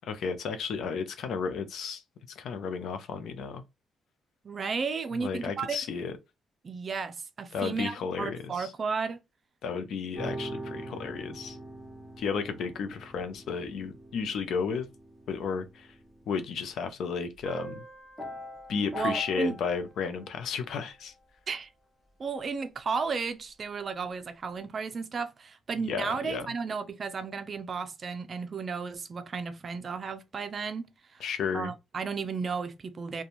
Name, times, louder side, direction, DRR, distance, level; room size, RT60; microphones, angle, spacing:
voice 1, 0.0-2.0 2.4-3.6 5.1-6.1 7.5-8.7 9.6-11.6 12.2-14.9 15.3-15.9 16.3-17.8 18.7-21.1 25.8-26.5 31.2-31.7, left 5 dB, 70° left, 0.5 m, -33 dB
voice 2, 4.4-5.8 6.6-9.2 18.9-19.6 21.5-21.7 22.2-31.2 31.5-33.2, right 5 dB, 45° right, 0.4 m, -33 dB
sound 1, 10.1-16.8 17.4-20.5, equal, 25° left, 1.2 m, -42 dB
2.5 x 2.2 x 2.9 m
cardioid pair, 90°, 0 cm